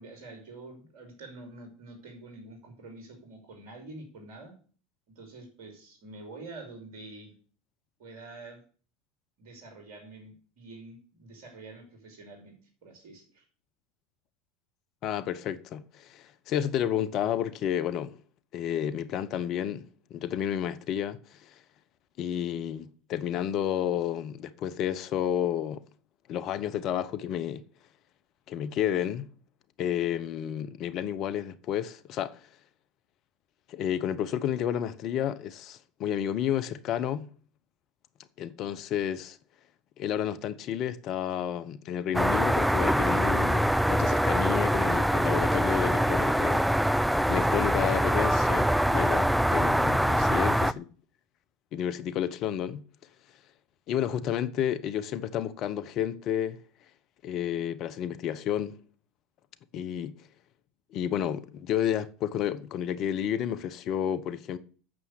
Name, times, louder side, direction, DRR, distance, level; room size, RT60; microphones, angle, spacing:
voice 1, 0.0-4.5 5.2-7.3 8.0-8.6 9.4-13.5, right 2 dB, 60° right, 5.6 m, -47 dB
voice 2, 15.0-18.2 18.5-21.5 22.2-25.8 26.3-27.6 28.5-29.3 29.8-32.4 33.7-37.3 38.4-39.4 40.0-46.7 47.3-50.8 51.7-52.8 53.9-56.6 57.2-58.8 59.7-60.1 60.9-64.6, left 10 dB, 50° left, 1.1 m, -31 dB
sound 1, 42.1-50.7, equal, ahead, 0.5 m, -24 dB
9.0 x 7.2 x 8.4 m
hypercardioid pair, 80°, 0 cm